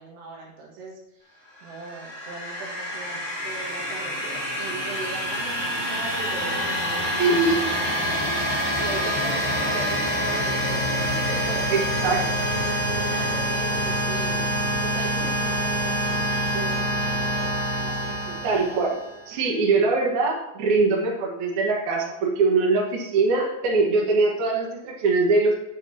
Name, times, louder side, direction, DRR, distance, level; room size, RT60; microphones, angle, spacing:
voice 1, 0.0-7.2 7.6-8.3 8.8-12.3 12.9-14.5 14.8-18.4, right 3 dB, 75° right, -3 dB, 3.8 m, -39 dB
sound 1, 1.7-19.3, equal, 10° right, 1.4 m, -26 dB
voice 2, 7.2-7.6 11.7-12.2 13.1-13.3 18.4-19.0 19.3-25.5, right 3 dB, 60° right, -1 dB, 2.3 m, -22 dB
9.1 x 7.0 x 2.8 m, 0.90 s
omnidirectional pair, 4.9 m